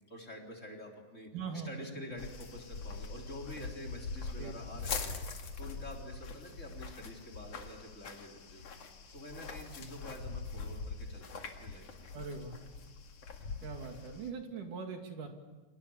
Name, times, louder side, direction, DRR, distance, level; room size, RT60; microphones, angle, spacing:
voice 1, 0.1-8.7 9.1-12.1, left 1 dB, 20° left, 0 dB, 3.2 m, -48 dB
voice 2, 1.3-2.1 4.4-4.6 9.8-9.9 12.1-12.6 13.6-15.3, right 5 dB, 50° right, 4 dB, 3.6 m, -41 dB
sound 1, 2.2-14.3, left 4 dB, 45° left, 2.3 m, -43 dB
29.5 x 27.0 x 7.2 m, 1.2 s
omnidirectional pair, 5.3 m